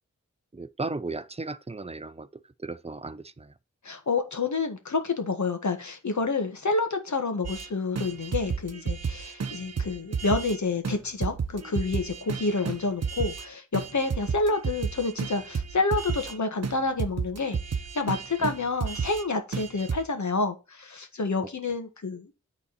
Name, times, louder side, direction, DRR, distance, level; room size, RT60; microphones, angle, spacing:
voice 1, 0.5-3.5 18.4-18.5, right 3 dB, 20° right, 0.5 m, -36 dB
voice 2, 3.8-22.3, left 3 dB, 70° left, 1.7 m, -29 dB
sound 1, 7.4-7.7 8.0-10.6 10.8-11.0 11.2-13.5 13.7-16.4 16.6-19.2 19.5-20.0, right 5 dB, 55° right, 0.8 m, -32 dB
9.6 x 4.1 x 4.2 m
wide cardioid pair, 85°, 30 cm